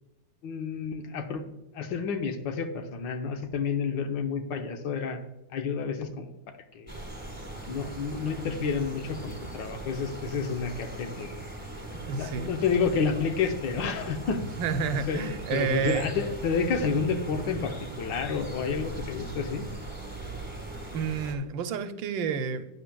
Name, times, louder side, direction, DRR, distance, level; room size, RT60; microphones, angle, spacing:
voice 1, 0.4-1.4 1.7-5.2 5.5-6.3 6.7-6.9 7.7-11.3 12.2-14.4 15.1-19.7, left 5 dB, 80° left, 6 dB, 1.6 m, -30 dB
sound 1, 6.9-21.3, right 2 dB, 5° right, 1.1 m, -40 dB
voice 2, 12.1-12.5 14.6-16.0 20.9-22.6, right 6 dB, 90° right, 9 dB, 1.4 m, -30 dB
11.0 x 8.7 x 2.3 m, 0.93 s
omnidirectional pair, 2.0 m